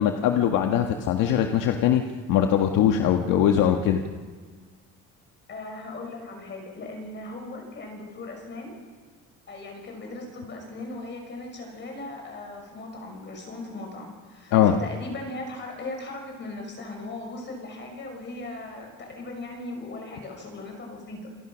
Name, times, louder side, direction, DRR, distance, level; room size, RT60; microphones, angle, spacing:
voice 1, 0.0-2.0 2.3-4.0 14.5-14.7, left 10 dB, 85° left, 4 dB, 1.7 m, -21 dB
voice 2, 5.5-8.8 9.5-21.3, left 2 dB, 35° left, 2 dB, 5.9 m, -38 dB
29.0 x 28.0 x 6.3 m, 1.5 s
cardioid pair, 155°, 32 cm